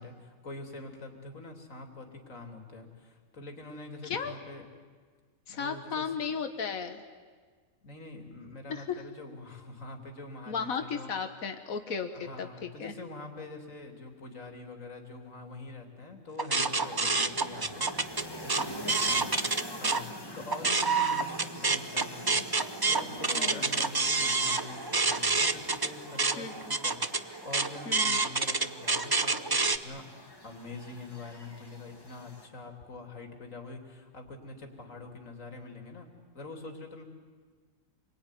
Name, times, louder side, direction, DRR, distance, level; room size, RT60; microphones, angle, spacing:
voice 1, 0.0-4.6 5.5-6.1 7.8-11.1 12.1-19.3 19.7-22.5 22.9-27.0 27.4-36.1 36.3-37.0, left 2 dB, 70° left, 4 dB, 3.4 m, -45 dB
voice 2, 5.5-7.0 8.7-9.0 10.5-12.9 19.1-19.2 23.3-23.6 26.4-26.8 27.9-28.2, left 6 dB, 90° left, 7 dB, 1.8 m, -35 dB
sound 1, 16.4-20.0 20.4-29.8, right 3 dB, 20° right, 0.6 m, -28 dB
sound 2, 16.6-32.5, equal, 15° left, 2.0 m, -45 dB
27.5 x 22.0 x 9.9 m, 1.5 s
omnidirectional pair, 1.4 m